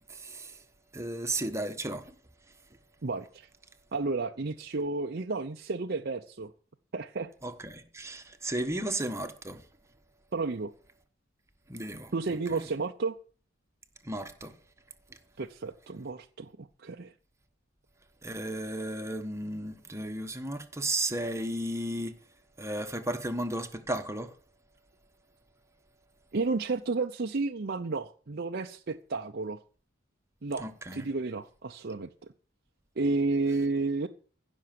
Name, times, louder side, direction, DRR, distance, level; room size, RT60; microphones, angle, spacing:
voice 1, 0.1-0.6 0.9-2.1 7.4-9.6 11.7-12.1 12.6-12.7 14.0-14.5 18.2-22.1 22.6-24.3 30.6-31.1, right 1 dB, 15° right, 1.3 m, -34 dB
voice 2, 3.0-3.5 3.9-6.5 6.9-7.3 10.3-10.7 12.1-13.2 15.4-17.1 26.3-29.6 30.4-32.1 33.0-34.1, right 3 dB, 50° right, 0.7 m, -32 dB
15.5 x 6.3 x 7.6 m
head